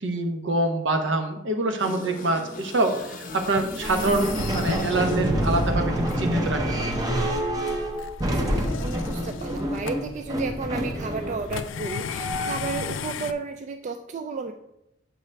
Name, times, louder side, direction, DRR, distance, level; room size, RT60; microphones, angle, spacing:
voice 1, 0.0-6.6, right 2 dB, 70° right, 5 dB, 0.8 m, -25 dB
sound 1, 1.8-6.1, left 1 dB, 45° left, 0.7 m, -34 dB
sound 2, 3.3-13.3, left 6 dB, 85° left, 0.4 m, -38 dB
sound 3, 3.8-12.9, right 1 dB, 20° right, 0.7 m, -28 dB
voice 2, 8.3-14.5, right 4 dB, 40° right, 6 dB, 0.3 m, -33 dB
7.5 x 4.7 x 3.3 m, 0.84 s
head